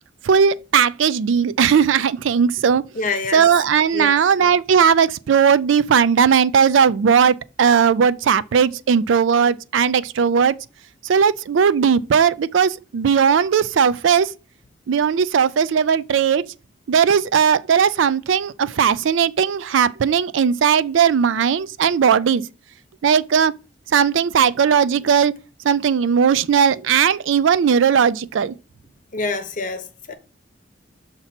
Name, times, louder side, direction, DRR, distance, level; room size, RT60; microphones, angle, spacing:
voice 1, 0.2-10.6 11.0-14.3 14.9-16.4 16.9-22.5 23.0-23.5 23.9-25.3 25.6-28.5, right 7 dB, 75° right, 0.4 m, -17 dB
voice 2, 2.9-3.4 3.9-4.2 29.1-30.2, left 3 dB, 40° left, 0.9 m, -26 dB
6.7 x 2.9 x 5.8 m
head